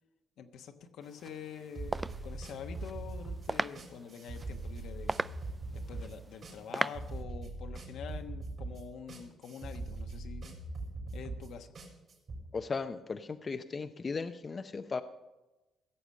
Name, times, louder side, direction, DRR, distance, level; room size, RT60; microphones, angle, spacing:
voice 1, 0.4-5.2 5.7-10.6 11.1-11.7, left 7 dB, 75° left, 6 dB, 1.2 m, -46 dB
sound 1, 1.0-7.2, right 3 dB, 20° right, 0.3 m, -40 dB
sound 2, 1.7-12.4, right 2 dB, 50° right, 4.2 m, -41 dB
voice 2, 12.5-15.0, left 4 dB, 35° left, 8 dB, 0.6 m, -36 dB
16.0 x 6.9 x 7.6 m, 1.1 s
cardioid pair, 90°, 0 cm